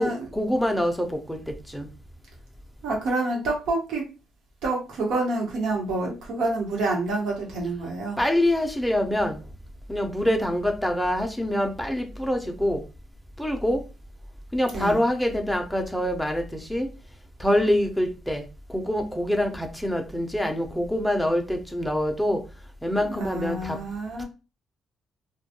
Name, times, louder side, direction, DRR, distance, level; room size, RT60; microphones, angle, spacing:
voice 1, 0.0-1.9 8.2-9.4 9.9-12.8 13.4-13.8 14.5-16.9 17.4-18.4 18.7-22.4 22.8-23.8 24.2-24.3, left 1 dB, ahead, 0.5 m, -25 dB
voice 2, 2.8-4.0 4.6-8.2 14.7-15.0 23.0-24.2, right 2 dB, 80° right, 1.0 m, -27 dB
2.2 x 2.1 x 2.8 m
cardioid pair, 90°, 0 cm